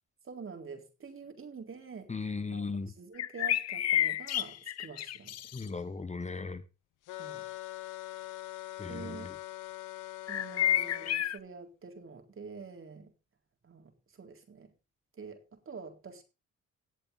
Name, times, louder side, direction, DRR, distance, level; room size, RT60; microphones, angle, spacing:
voice 1, 0.2-5.4 7.2-7.4 8.9-9.3 10.3-13.1 13.6-14.7 15.2-16.2, right 5 dB, 45° right, 5 dB, 4.0 m, -47 dB
voice 2, 2.1-2.9 5.5-6.6 8.8-9.3, left 4 dB, 25° left, 13 dB, 1.1 m, -37 dB
sound 1, 3.2-5.6 10.3-11.4, left 12 dB, 55° left, 0.6 m, -30 dB
sound 2, 7.1-11.2, left 17 dB, 90° left, 1.1 m, -43 dB
18.5 x 7.1 x 4.0 m, 0.29 s
cardioid pair, 90°, 30 cm